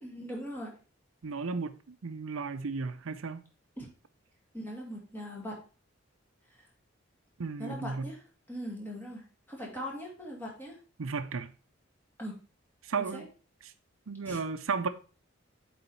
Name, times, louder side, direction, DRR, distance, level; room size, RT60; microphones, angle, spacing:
voice 1, 0.0-0.7 3.8-3.9 4.5-5.6 6.5-6.7 7.6-8.2 8.5-9.2 9.5-10.8 12.2-12.3 13.0-13.3 14.3-14.4, equal, 10° left, 2.1 m, -40 dB
voice 2, 1.2-3.4 7.4-8.1 11.0-11.5 12.8-13.3 14.1-14.9, right 4 dB, 80° right, 0.6 m, -34 dB
8.0 x 4.2 x 4.2 m
head